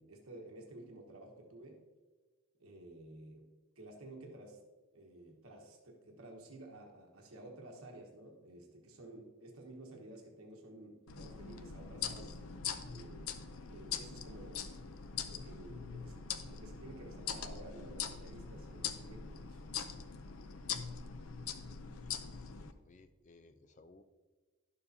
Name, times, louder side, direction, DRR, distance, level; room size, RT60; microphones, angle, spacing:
voice 1, 0.0-1.8 2.6-3.5 3.8-4.6 4.9-12.4 12.9-13.3 13.7-14.7 15.2-19.6, right 1 dB, 85° right, 1 dB, 1.2 m, -52 dB
sound 1, 11.1-22.7, left 7 dB, 85° left, 0.6 m, -43 dB
voice 2, 21.2-21.6 22.0-24.0, left 3 dB, 35° left, 9 dB, 0.4 m, -63 dB
11.0 x 6.9 x 2.7 m, 1.3 s
head